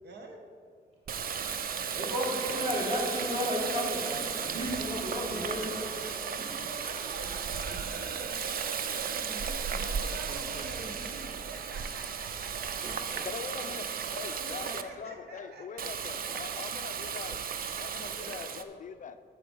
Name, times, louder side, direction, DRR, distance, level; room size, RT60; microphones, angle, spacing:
voice 1, 0.0-0.5 4.4-13.3 13.6-13.7 14.0-16.6 18.2-18.6, right 2 dB, 75° right, 2 dB, 1.1 m, -46 dB
Water tap faucet, 1.1-14.8 15.8-18.6, right 7 dB, 60° right, 0.5 m, -35 dB
voice 2, 1.3-5.7 6.4-6.6 13.1-13.2, equal, 35° right, -2 dB, 2.0 m, -33 dB
voice 3, 13.2-13.9 14.1-17.4 17.8-19.2, left 7 dB, 50° left, 10 dB, 0.4 m, -42 dB
8.5 x 6.7 x 5.3 m, 2.2 s
wide cardioid pair, 180°, 17 cm